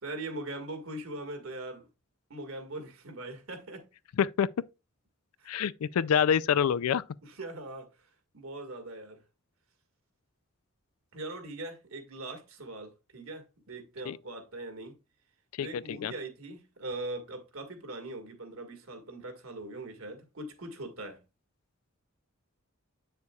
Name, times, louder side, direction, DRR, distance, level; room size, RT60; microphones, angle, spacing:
voice 1, 0.0-1.9 2.3-3.9 5.4-5.5 7.2-7.9 8.3-9.2 11.1-15.0 15.6-21.2, right 2 dB, 75° right, 1.7 m, -41 dB
voice 2, 4.2-4.5 5.5-7.0 14.1-14.2 15.6-16.1, left 8 dB, 90° left, 0.4 m, -26 dB
8.3 x 6.7 x 2.3 m
head